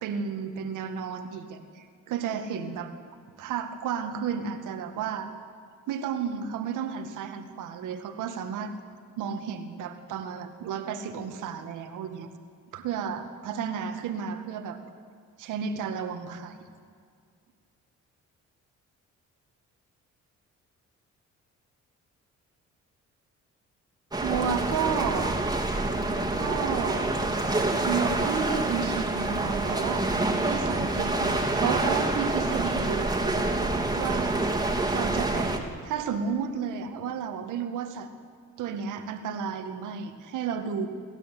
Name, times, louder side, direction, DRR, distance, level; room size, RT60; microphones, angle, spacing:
voice 1, 0.0-2.9 3.4-5.3 5.9-8.8 9.2-12.3 12.7-14.8 15.4-16.6 24.2-25.4 26.4-27.1 27.8-30.1 30.4-33.1 34.0-34.4 34.9-38.1 38.6-40.9, right 7 dB, 85° right, 7 dB, 2.1 m, -32 dB
sound 1, 24.1-35.6, right 2 dB, 15° right, 3.0 m, -27 dB
29.0 x 12.5 x 9.4 m, 2.1 s
cardioid pair, 90°, 30 cm